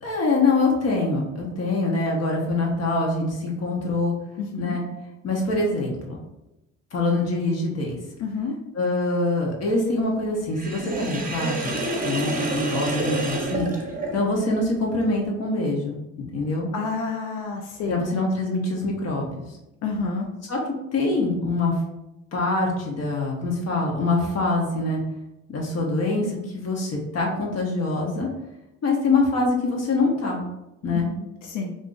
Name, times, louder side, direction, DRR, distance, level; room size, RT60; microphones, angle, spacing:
voice 1, 0.0-4.1 4.6-4.8 5.2-6.2 6.9-8.0 8.8-11.8 12.0-13.7 14.1-16.7 17.9-19.5 20.5-20.6 20.9-21.8 22.3-25.0 25.5-28.3 28.8-30.4 30.8-31.1, left 2 dB, 55° left, -1 dB, 0.8 m, -24 dB
voice 2, 4.4-4.8 8.2-8.5 16.7-18.0 19.8-20.3 30.9-31.7, left 4 dB, 90° left, 1 dB, 0.5 m, -29 dB
Sink (filling or washing), 10.6-14.5, right 2 dB, 30° right, 0.7 m, -28 dB
2.5 x 2.3 x 3.7 m, 0.94 s
cardioid pair, 90°, 30 cm